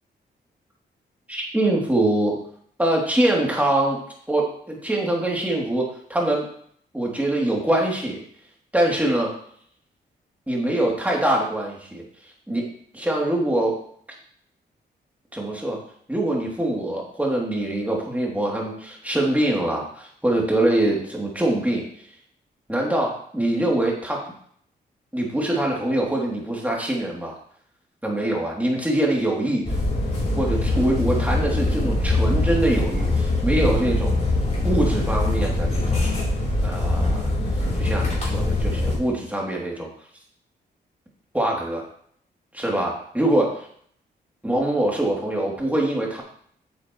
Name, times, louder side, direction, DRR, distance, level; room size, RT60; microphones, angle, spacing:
voice 1, 1.3-2.4 2.8-4.0 4.3-6.5 6.9-8.2 8.7-9.3 10.5-12.0 12.5-13.8 15.3-15.8 16.1-21.8 22.7-24.3 25.1-27.3 28.0-29.8 30.3-34.1 34.6-36.1 36.6-37.3 37.8-39.9 41.3-41.8 42.5-43.7 44.4-46.2, right 1 dB, 10° right, -2 dB, 3.0 m, -24 dB
sound 1, 29.7-39.0, left 2 dB, 40° left, 3.8 m, -23 dB
9.4 x 7.2 x 3.2 m, 0.62 s
cardioid pair, 70°, 18 cm